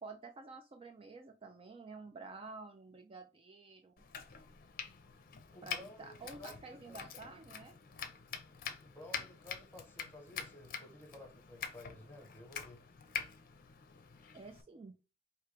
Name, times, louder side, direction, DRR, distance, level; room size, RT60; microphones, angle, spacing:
voice 1, 0.0-3.9 5.6-7.7 14.3-14.9, right 4 dB, 30° right, 0.3 m, -50 dB
Domestic sounds home sounds, 4.0-14.6, left 7 dB, 50° left, 0.6 m, -46 dB
voice 2, 5.5-7.0 8.8-12.8, left 1 dB, 10° left, 1.1 m, -54 dB
4.6 x 2.8 x 3.3 m
head